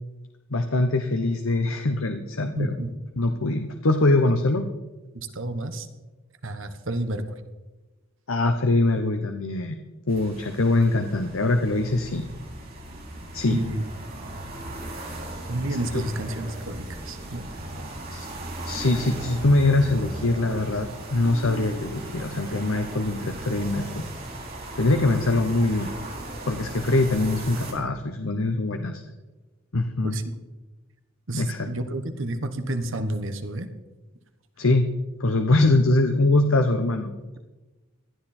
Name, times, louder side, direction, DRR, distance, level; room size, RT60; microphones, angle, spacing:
voice 1, 0.5-2.7 3.2-4.7 8.3-9.8 10.1-12.2 13.3-13.6 15.9-16.0 18.1-18.3 18.6-24.0 24.7-25.9 26.5-29.0 29.7-30.1 31.3-31.7 34.6-34.8 35.2-37.4, left 2 dB, 75° left, 6 dB, 1.0 m, -23 dB
voice 2, 2.6-2.9 5.1-5.9 6.4-7.2 13.5-13.9 15.5-17.5 17.7-18.0 30.0-30.2 31.3-33.7, right 1 dB, 65° right, 8 dB, 1.3 m, -30 dB
sound 1, 10.1-27.7, right 1 dB, 45° right, 4.2 m, -37 dB
18.5 x 12.5 x 4.4 m, 1.1 s
head